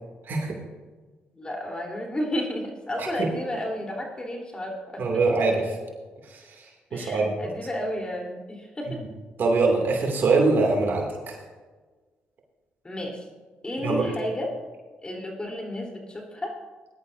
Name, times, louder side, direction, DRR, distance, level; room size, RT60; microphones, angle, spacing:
voice 1, 1.3-5.0 6.9-9.0 12.8-13.3 13.6-14.6 15.0-16.6, left 1 dB, 25° left, 0 dB, 3.6 m, -32 dB
voice 2, 3.0-3.3 5.0-5.7 6.3-6.4 6.9-7.3 9.4-11.4 13.8-14.0, right 3 dB, 60° right, 0 dB, 2.6 m, -23 dB
20.0 x 11.5 x 2.7 m, 1.3 s
supercardioid pair, 70°, 4 cm